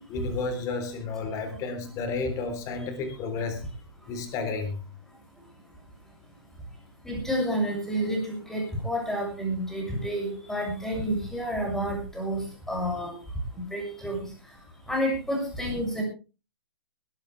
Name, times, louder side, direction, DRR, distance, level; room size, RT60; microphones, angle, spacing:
voice 1, 0.1-3.6 4.1-4.8, left 4 dB, 25° left, 7 dB, 3.8 m, -32 dB
voice 2, 7.0-13.1 13.5-14.3 14.9-16.0, equal, 5° left, 0 dB, 7.0 m, -29 dB
21.0 x 13.0 x 3.4 m, 0.33 s
figure-of-eight pair, 120°, 13 cm